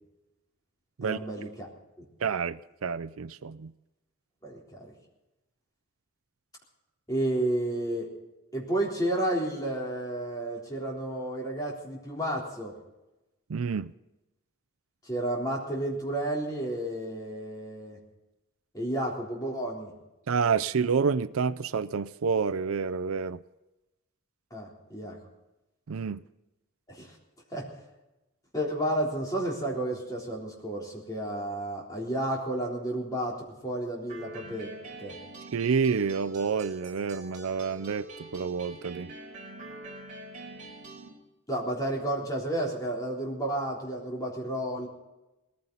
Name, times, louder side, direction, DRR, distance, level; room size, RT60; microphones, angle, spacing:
voice 1, 1.0-1.7 2.0-2.1 4.4-4.9 7.1-8.1 8.5-12.7 15.0-18.0 18.7-19.9 24.5-25.2 26.9-27.2 27.5-27.7 28.5-34.7 35.0-35.2 41.5-44.9, right 1 dB, 15° left, -2 dB, 3.7 m, -31 dB
voice 2, 2.2-3.7 13.5-13.9 20.3-23.4 25.9-26.2 35.5-39.1, right 5 dB, 80° right, 16 dB, 0.5 m, -28 dB
sound 1, 34.1-41.1, right 2 dB, 35° right, 4.1 m, -45 dB
20.0 x 15.0 x 4.0 m, 0.99 s
head